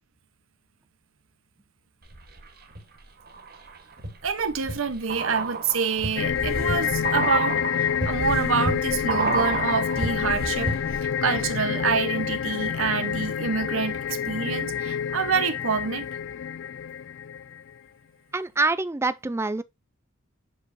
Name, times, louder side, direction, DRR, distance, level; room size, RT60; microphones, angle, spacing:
sound 1, 2.1-2.8 3.3-11.1 11.4-11.5, right 3 dB, 45° right, 1.3 m, -31 dB
voice 1, 4.2-10.8 11.2-16.1, right 5 dB, 75° right, 0.9 m, -27 dB
sound 2, 6.2-17.7, left 8 dB, 60° left, 0.3 m, -28 dB
voice 2, 18.3-19.6, right 3 dB, 10° right, 0.4 m, -25 dB
7.4 x 4.9 x 2.6 m
head